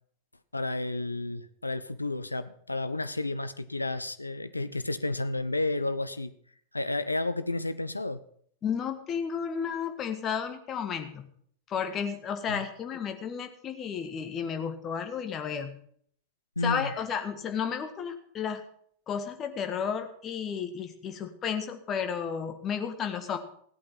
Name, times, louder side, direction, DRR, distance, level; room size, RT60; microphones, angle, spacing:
voice 1, 0.5-6.3 6.7-8.2 12.5-12.6 16.6-16.9, left 2 dB, 85° left, 13 dB, 0.6 m, -31 dB
voice 2, 8.6-11.3 11.7-15.8 16.6-18.6 19.1-23.4, left 7 dB, 30° left, 6 dB, 1.7 m, -32 dB
16.5 x 8.5 x 5.8 m, 0.63 s
figure-of-eight pair, 90°, 0 cm